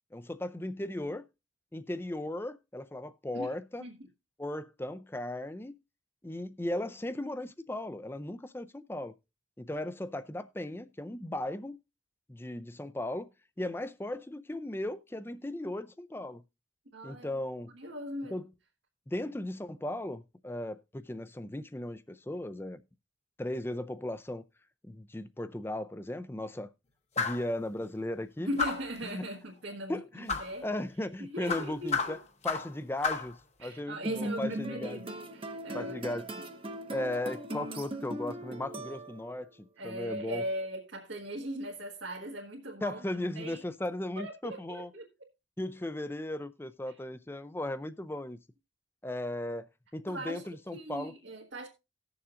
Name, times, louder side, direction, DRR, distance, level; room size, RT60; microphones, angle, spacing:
voice 1, 0.1-1.2 1.7-3.9 4.4-5.7 6.2-9.1 9.6-11.8 12.3-13.3 13.6-16.4 17.0-17.7 18.3-18.4 19.1-22.8 23.4-24.4 24.9-26.7 27.2-28.5 29.0-29.3 29.9-32.2 32.4-35.0 35.7-36.3 36.9-40.4 42.8-44.9 45.6-48.4 49.0-49.7 49.9-51.1, left 1 dB, 10° left, 0.4 m, -37 dB
voice 2, 16.9-17.4 17.7-18.4 28.4-30.7 31.2-32.2 33.6-36.1 36.3-36.5 39.8-43.0 43.3-43.6 44.2-45.3 50.1-51.7, equal, 80° right, 1.5 m, -39 dB
sound 1, 27.2-27.5 28.6-29.0 30.3-30.5 31.5-32.7 33.0-33.3, left 5 dB, 35° left, 0.9 m, -31 dB
sound 2, 34.0-39.4, right 1 dB, 30° right, 0.7 m, -38 dB
18.0 x 6.9 x 2.5 m
head